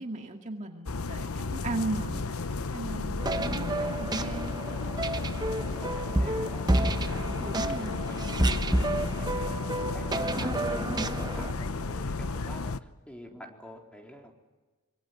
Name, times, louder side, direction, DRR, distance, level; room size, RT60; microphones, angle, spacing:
voice 1, 0.0-2.2 2.7-4.6 7.4-8.1, right 2 dB, 35° right, 3 dB, 2.2 m, -37 dB
sound 1, 0.9-12.8, left 3 dB, 85° left, 0.9 m, -33 dB
voice 2, 2.1-2.7 5.4-14.3, equal, 5° left, 2 dB, 4.0 m, -48 dB
sound 2, 3.2-11.5, right 1 dB, 20° right, 1.0 m, -30 dB
26.0 x 24.0 x 9.5 m, 1.2 s
head